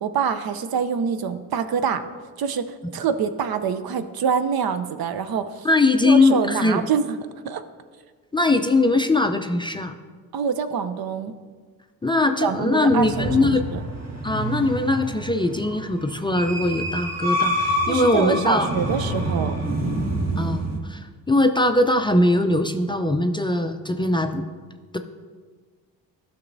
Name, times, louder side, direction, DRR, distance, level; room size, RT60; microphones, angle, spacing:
voice 1, 0.0-2.0 2.4-5.7 6.0-7.2 7.4-7.6 10.3-11.3 12.4-13.8 17.9-19.6, right 7 dB, 55° right, 10 dB, 0.7 m, -25 dB
voice 2, 5.6-6.8 8.3-10.0 12.0-13.7 14.2-18.7 20.4-24.5, left 2 dB, 10° left, 6 dB, 0.5 m, -21 dB
sound 1, 12.9-20.8, right 1 dB, 35° right, 1.6 m, -27 dB
12.5 x 6.1 x 2.7 m, 1.5 s
supercardioid pair, 55°, 43 cm